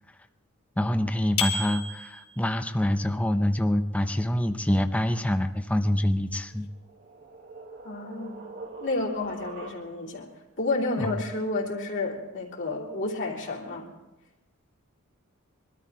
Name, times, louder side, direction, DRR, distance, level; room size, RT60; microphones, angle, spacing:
voice 1, 0.8-6.7 11.0-11.2, left 1 dB, 5° left, 7 dB, 0.6 m, -26 dB
sound 1, 1.4-2.5, left 4 dB, 85° left, 2.5 m, -31 dB
sound 2, 6.4-10.2, right 3 dB, 50° right, 1.7 m, -44 dB
voice 2, 7.8-8.4 8.8-10.3 10.6-13.9, left 2 dB, 55° left, -3 dB, 3.0 m, -30 dB
22.0 x 13.0 x 4.7 m, 1.0 s
head